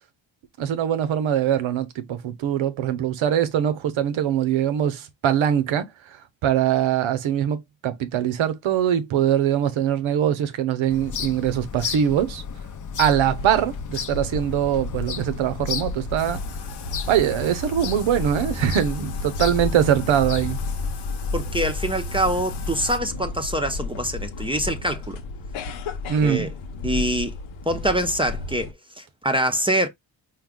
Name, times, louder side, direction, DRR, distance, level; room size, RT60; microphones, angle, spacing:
voice 1, 0.6-12.4 13.0-16.4 17.1-20.6 26.1-26.5, right 10 dB, 85° right, 0.9 m, -22 dB
sound 1, 10.9-20.8, left 7 dB, 40° left, 0.6 m, -35 dB
sound 2, 12.9-28.7, left 3 dB, 85° left, 0.8 m, -32 dB
Bathtub (filling or washing), 16.2-23.0, left 8 dB, 60° left, 0.9 m, -42 dB
voice 2, 21.3-25.2 26.2-26.5 26.8-27.4 27.7-28.7 29.0-29.9, right 1 dB, 10° right, 0.6 m, -24 dB
4.7 x 2.2 x 3.7 m
cardioid pair, 85°, 46 cm